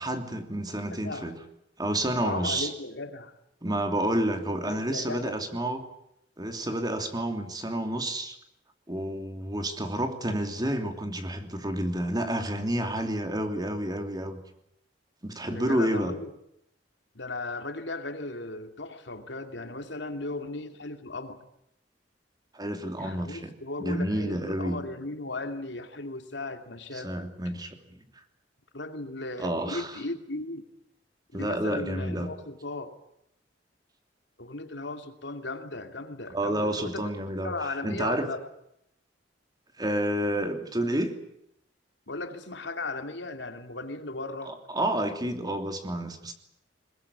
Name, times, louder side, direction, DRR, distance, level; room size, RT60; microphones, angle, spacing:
voice 1, 0.0-1.4 1.8-2.7 3.6-5.9 6.4-8.4 8.9-14.4 15.2-16.1 22.5-23.5 23.8-24.8 26.9-28.0 29.4-29.9 31.3-32.3 36.3-37.5 37.8-38.3 39.8-41.1 44.5-46.3, right 1 dB, 20° right, 6 dB, 3.0 m, -30 dB
voice 2, 2.2-3.3 4.4-5.4 15.5-16.3 17.1-21.4 23.0-27.3 28.7-30.6 31.3-32.9 34.4-37.0 37.4-38.4 42.1-44.6, left 2 dB, 70° left, 7 dB, 2.6 m, -36 dB
21.5 x 21.5 x 9.9 m, 0.77 s
head